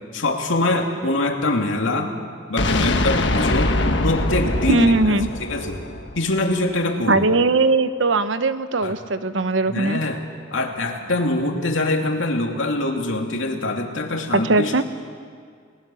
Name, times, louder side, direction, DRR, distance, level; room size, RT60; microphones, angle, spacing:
voice 1, 0.1-2.1 2.5-3.8 4.0-4.9 5.4-5.8 6.1-7.2 8.8-8.9 9.7-10.2 10.5-14.8, left 2 dB, 80° left, 2 dB, 2.7 m, -23 dB
sound 1, 2.6-6.5, left 2 dB, 60° left, 1.4 m, -23 dB
voice 2, 4.7-5.3 7.1-10.0 14.3-14.8, right 2 dB, 70° right, 11 dB, 1.0 m, -19 dB
30.0 x 19.5 x 7.1 m, 2.1 s
head